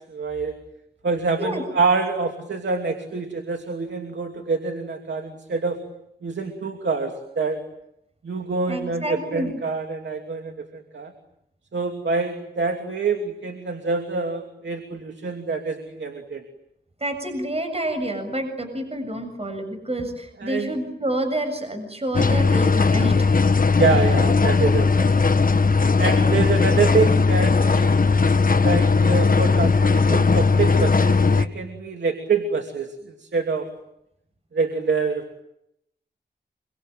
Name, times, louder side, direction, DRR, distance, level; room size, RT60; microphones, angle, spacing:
voice 1, 0.1-0.5 1.0-5.8 6.2-7.6 8.2-11.1 11.7-16.4 20.4-20.7 23.7-25.1 26.0-27.9 28.5-33.7 34.5-35.4, right 4 dB, 85° right, 4 dB, 2.9 m, -26 dB
voice 2, 8.7-9.5 17.0-23.4 23.9-24.1 25.9-27.0, right 1 dB, 35° right, 7 dB, 7.3 m, -29 dB
sound 1, 22.1-31.5, left 4 dB, 50° left, 1.3 m, -18 dB
26.0 x 25.0 x 9.2 m, 0.79 s
wide cardioid pair, 60°, 18 cm